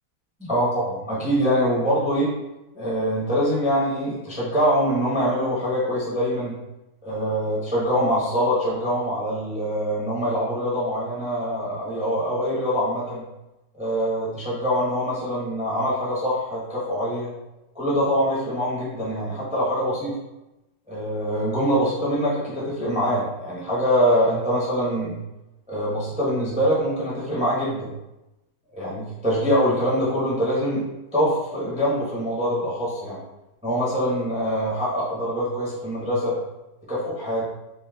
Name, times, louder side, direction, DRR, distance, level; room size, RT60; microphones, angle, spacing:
voice 1, 0.4-2.3 2.7-6.6 7.0-13.2 13.7-17.3 17.7-20.2 20.9-25.2 25.7-27.9 28.7-30.8 31.1-33.2 33.6-36.4 36.9-37.4, equal, 5° right, -7 dB, 0.6 m, -24 dB
4.0 x 2.7 x 2.3 m, 0.97 s
omnidirectional pair, 1.6 m